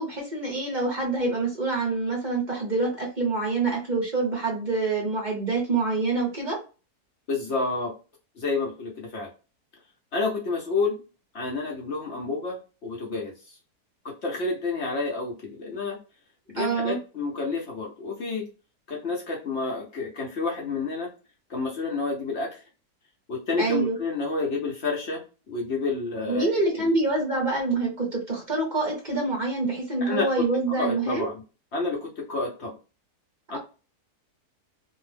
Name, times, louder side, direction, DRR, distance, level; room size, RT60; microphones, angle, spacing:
voice 1, 0.0-6.6 16.6-17.0 23.6-24.0 26.2-31.3, right 3 dB, 40° right, -1 dB, 0.7 m, -26 dB
voice 2, 7.3-8.0 8.4-9.3 10.1-11.0 11.3-13.6 14.0-16.0 16.5-18.5 18.9-21.1 21.5-22.6 23.3-26.9 30.0-30.5 30.8-31.4 31.7-32.8 33.5-33.6, left 3 dB, 55° left, -1 dB, 0.8 m, -29 dB
2.6 x 2.0 x 3.1 m, 0.33 s
omnidirectional pair, 1.6 m